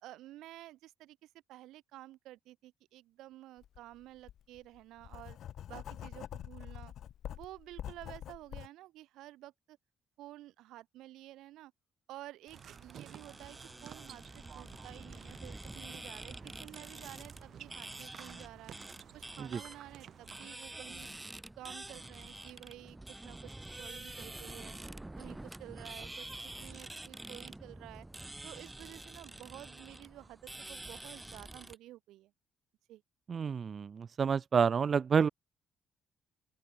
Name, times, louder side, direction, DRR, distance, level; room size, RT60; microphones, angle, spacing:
voice 1, 0.0-5.4 5.7-6.9 7.3-9.8 10.2-11.7 12.1-18.8 19.1-21.1 21.5-24.8 25.2-28.1 28.4-32.3 32.9-33.0, right 15 dB, 90° right, 2.3 m, -51 dB
Writing, 3.6-3.8 4.2-8.7, left 10 dB, 70° left, 5.5 m, -45 dB
sound 1, 12.5-31.8, right 2 dB, 10° right, 4.2 m, -47 dB
sound 2, 12.5-20.8, right 9 dB, 65° right, 2.4 m, -53 dB
voice 2, 33.3-35.3, right 6 dB, 45° right, 0.4 m, -28 dB
open air
cardioid pair, 90°, 0 cm